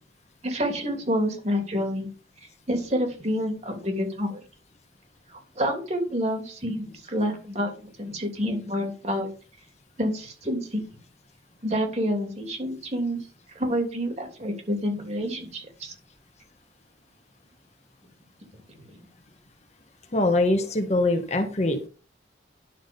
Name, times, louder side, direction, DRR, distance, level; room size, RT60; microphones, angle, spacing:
voice 1, 0.4-2.1 2.7-4.4 5.3-9.3 10.0-10.8 11.6-13.2 13.5-15.9, equal, 35° right, 4 dB, 3.0 m, -28 dB
voice 2, 20.1-21.9, left 2 dB, 35° left, 6 dB, 1.5 m, -23 dB
11.0 x 6.3 x 5.3 m, 0.36 s
head